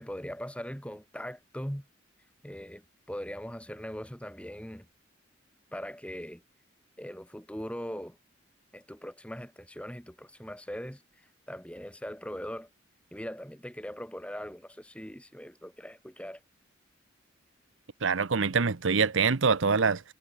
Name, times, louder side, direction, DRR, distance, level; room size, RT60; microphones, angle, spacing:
voice 1, 0.0-1.9 2.4-4.9 5.7-6.4 7.0-8.2 8.7-12.7 13.1-16.4, equal, 5° left, 7.5 m, -40 dB
voice 2, 18.0-20.0, right 5 dB, 75° right, 0.8 m, -25 dB
head